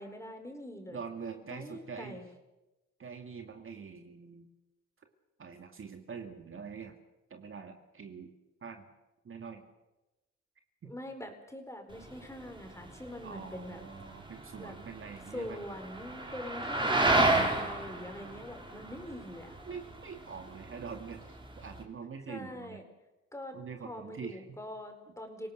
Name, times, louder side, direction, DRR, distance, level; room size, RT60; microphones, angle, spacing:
voice 1, 0.0-1.0 1.5-2.2 10.8-13.8 14.6-14.7 15.3-19.6 22.3-22.9 23.3-23.6 23.8-25.5, left 1 dB, 10° left, 5 dB, 4.9 m, -44 dB
voice 2, 0.9-2.2 3.0-4.5 5.4-6.9 7.3-8.3 8.6-8.9 9.2-9.6 10.8-10.9 13.2-15.6 19.6-22.8 23.5-24.6, right 6 dB, 45° right, 5 dB, 2.5 m, -44 dB
sound 1, 11.9-21.8, right 2 dB, 15° right, 4.8 m, -32 dB
27.0 x 18.0 x 6.9 m, 1.0 s
cardioid pair, 90°, 30 cm